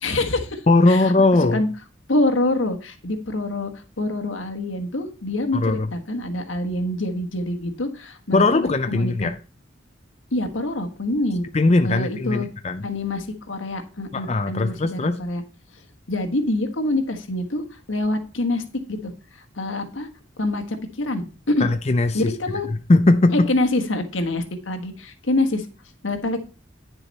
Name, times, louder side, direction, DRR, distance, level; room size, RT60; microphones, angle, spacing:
voice 1, 0.0-0.6 0.9-1.0 1.5-1.7 2.1-3.7 4.0-9.3 10.3-11.5 11.8-12.5 12.8-15.4 16.1-19.1 19.5-20.1 20.4-21.7 22.1-22.7 23.3-25.6 26.0-26.4, left 2 dB, 85° left, 1.5 m, -25 dB
voice 2, 0.7-1.6 5.5-5.9 8.3-9.4 11.5-12.9 14.1-15.2 21.6-22.4 22.7-23.5, left 2 dB, 35° left, 0.5 m, -19 dB
9.9 x 7.0 x 4.1 m
head